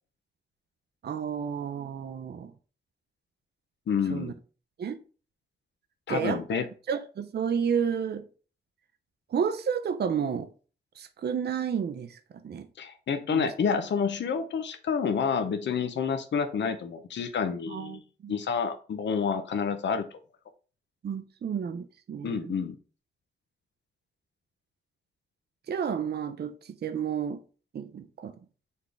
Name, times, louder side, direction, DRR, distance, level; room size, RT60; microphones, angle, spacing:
voice 1, 1.0-2.5 4.1-4.3 4.8-5.0 6.1-6.4 6.9-8.2 9.3-10.5 11.0-12.7 13.3-13.5 17.7-18.4 21.0-22.6 25.7-27.4 27.7-28.3, right 7 dB, 65° right, 0.4 m, -31 dB
voice 2, 3.9-4.3 6.1-6.6 12.8-18.0 18.3-20.1 22.2-22.8, left 6 dB, 80° left, 0.5 m, -29 dB
4.1 x 3.4 x 3.1 m
wide cardioid pair, 130°, 18 cm